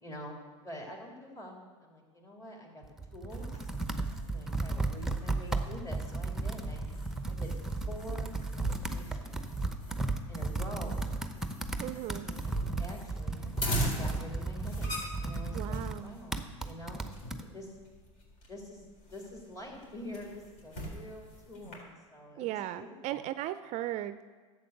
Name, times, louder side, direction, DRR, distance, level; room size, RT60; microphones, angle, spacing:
voice 1, 0.0-2.8 3.1-3.7 4.2-6.8 7.3-7.5 7.9-9.5 10.3-11.2 12.2-14.9 15.2-17.1 17.3-17.7 18.5-18.8 19.1-23.3, left 1 dB, 20° left, -1 dB, 3.4 m, -46 dB
Computer keyboard, 2.8-17.4, right 3 dB, 5° right, 0.8 m, -35 dB
sound 1, 3.3-21.8, equal, 50° left, 4.1 m, -42 dB
voice 2, 11.8-12.3 15.5-16.1 22.4-24.3, right 13 dB, 45° right, 13 dB, 0.4 m, -37 dB
12.0 x 7.9 x 6.6 m, 1.5 s
hypercardioid pair, 95°, 16 cm